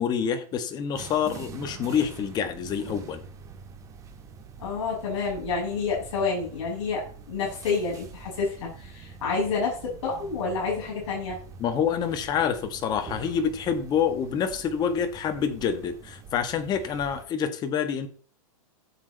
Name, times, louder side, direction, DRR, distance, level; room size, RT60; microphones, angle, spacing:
voice 1, 0.0-3.2 11.6-18.1, left 7 dB, 20° left, 8 dB, 1.6 m, -27 dB
sound 1, 0.9-17.2, right 6 dB, 15° right, 2.1 m, -45 dB
voice 2, 4.6-11.4, left 4 dB, 55° left, -3 dB, 6.6 m, -29 dB
15.5 x 7.5 x 4.1 m, 0.42 s
hypercardioid pair, 150°, 18 cm